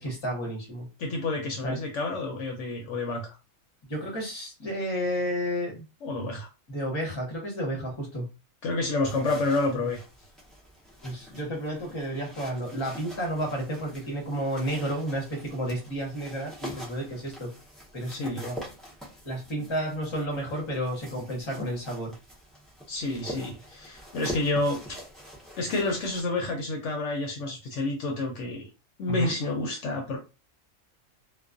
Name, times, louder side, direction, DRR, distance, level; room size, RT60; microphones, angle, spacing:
voice 1, 0.0-0.9 1.6-1.8 3.9-5.8 6.7-8.3 9.7-9.9 11.0-17.5 17.9-18.6 19.2-22.1 23.1-23.2 29.1-29.3, equal, 25° left, 1 dB, 0.7 m, -31 dB
voice 2, 1.0-3.3 6.0-6.5 8.6-10.0 18.1-18.4 22.9-25.0 25.6-28.6 29.0-30.2, left 2 dB, 70° left, 1 dB, 0.9 m, -29 dB
sound 1, 9.0-26.2, equal, ahead, 0.3 m, -45 dB
2.3 x 2.2 x 2.4 m, 0.30 s
omnidirectional pair, 1.4 m